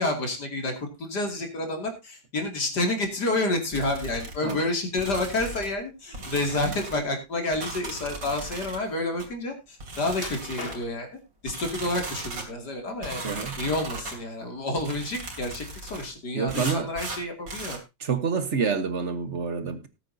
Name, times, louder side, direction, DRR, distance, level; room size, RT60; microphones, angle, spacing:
voice 1, 0.0-11.1 11.4-13.2 13.6-17.8, left 2 dB, 55° left, 3.1 m, -29 dB
sound 1, 3.7-4.6 5.0-5.8 6.1-7.0 7.5-8.8 9.2-9.3 9.8-10.9 11.5-12.5 13.0-14.2 14.8-16.1 16.5-17.8, right 2 dB, 70° right, 3.6 m, -37 dB
sound 2, 10.2-11.2 11.9-12.5 12.9-13.9 14.2-14.4 14.9-15.0, left 3 dB, 30° left, 1.8 m, -41 dB
voice 2, 13.2-13.6 16.3-16.9 18.0-19.9, right 5 dB, 40° right, 1.4 m, -27 dB
19.0 x 8.9 x 2.7 m
omnidirectional pair, 2.1 m